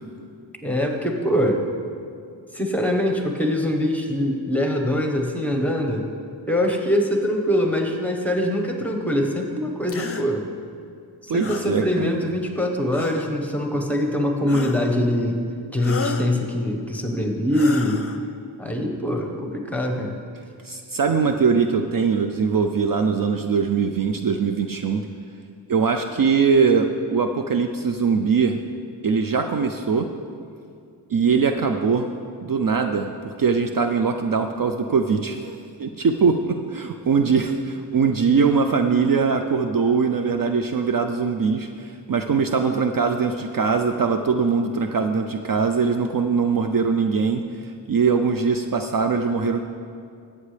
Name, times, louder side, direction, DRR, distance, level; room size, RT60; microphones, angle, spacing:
voice 1, 0.6-1.6 2.5-6.0 6.5-10.5 11.2-15.4 15.7-18.1 18.6-20.2, left 1 dB, 5° left, 3 dB, 1.1 m, -23 dB
sound 1, 9.9-10.3 11.4-11.7 12.9-13.4 14.5-15.0 15.8-16.3 17.5-18.2, left 4 dB, 30° left, 0.6 m, -32 dB
voice 2, 11.3-12.2 20.6-25.0 25.7-28.6 29.0-30.1 31.1-32.1 32.4-49.6, right 5 dB, 50° right, 6 dB, 0.5 m, -21 dB
13.5 x 8.4 x 3.3 m, 2.4 s
wide cardioid pair, 75°, 46 cm